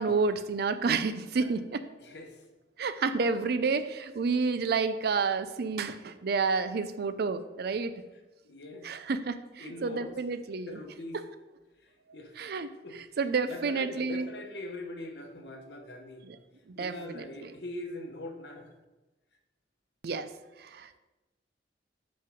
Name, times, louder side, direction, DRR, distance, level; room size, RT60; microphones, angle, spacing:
voice 1, 0.0-1.8 2.8-8.0 8.8-10.8 11.1-11.2 12.4-12.7 13.2-14.3 16.2-16.4 16.7-17.5 20.0-20.3 20.6-21.0, right 4 dB, 60° right, 12 dB, 0.5 m, -30 dB
voice 2, 2.0-2.4 8.4-8.9 9.6-10.1 10.7-11.2 11.8-12.3 12.8-13.2 13.5-16.3 16.7-18.7, left 1 dB, 70° left, 3 dB, 1.1 m, -42 dB
5.4 x 5.4 x 5.2 m, 1.1 s
head